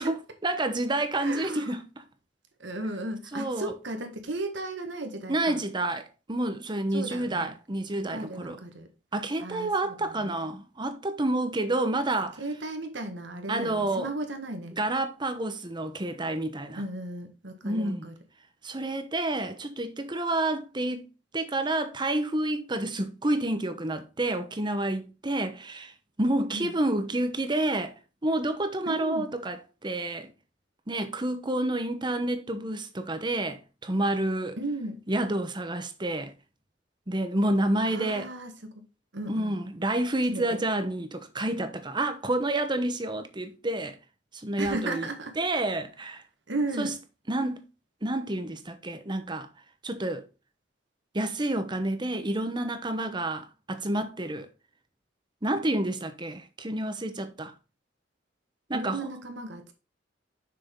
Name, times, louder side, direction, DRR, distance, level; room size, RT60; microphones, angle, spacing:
voice 1, 0.0-1.8 3.3-3.7 5.3-8.6 9.1-12.4 13.5-14.1 14.8-16.8 17.6-18.1 18.6-21.0 21.3-25.9 26.2-27.9 28.2-30.3 30.9-34.6 35.1-36.3 37.1-38.3 39.3-44.0 44.3-45.1 45.4-46.2 46.8-46.9 47.3-47.6 48.0-49.5 49.8-50.3 51.1-54.5 55.4-57.5 58.7-59.1, right 1 dB, 25° right, 1.0 m, -29 dB
voice 2, 1.2-1.8 2.6-5.6 6.9-7.5 7.9-8.9 9.4-10.5 12.4-14.8 16.8-18.1 26.5-26.8 28.9-29.3 34.6-35.0 37.9-38.8 39.1-39.5 40.3-40.6 44.6-45.4 46.5-46.9 58.7-59.7, right 2 dB, 70° right, 1.6 m, -35 dB
7.0 x 6.2 x 3.7 m
head